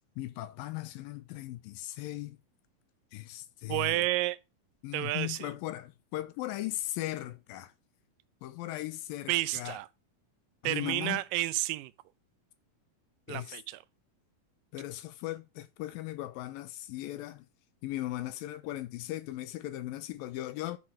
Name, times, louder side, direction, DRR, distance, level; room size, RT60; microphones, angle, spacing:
voice 1, 0.2-2.4 3.1-4.0 4.8-7.7 8.4-9.8 10.6-11.2 13.3-13.6 14.7-17.5 17.8-20.8, left 15 dB, 85° left, 2.5 m, -38 dB
voice 2, 3.7-4.4 4.9-5.5 9.3-9.9 10.6-11.9 13.3-13.8, right 18 dB, 80° right, 2.2 m, -31 dB
11.5 x 4.3 x 6.2 m
omnidirectional pair, 4.1 m